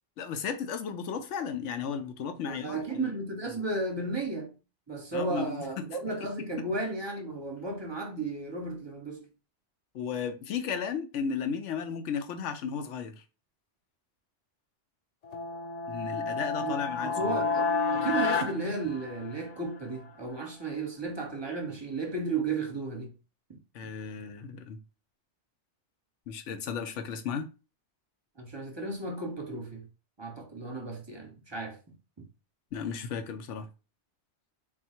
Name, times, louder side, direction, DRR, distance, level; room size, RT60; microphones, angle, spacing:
voice 1, 0.2-3.1 3.5-3.6 5.1-5.6 9.9-13.2 15.9-17.4 23.7-24.8 26.3-27.5 32.7-33.7, left 6 dB, 85° left, 1.0 m, -34 dB
voice 2, 2.4-4.5 4.9-9.3 16.6-23.1 28.4-29.9 30.2-31.8 32.2-32.3, right 3 dB, 25° right, 0.8 m, -34 dB
sound 1, 15.2-19.6, left 4 dB, 60° left, 0.4 m, -30 dB
3.6 x 2.5 x 4.3 m
omnidirectional pair, 1.2 m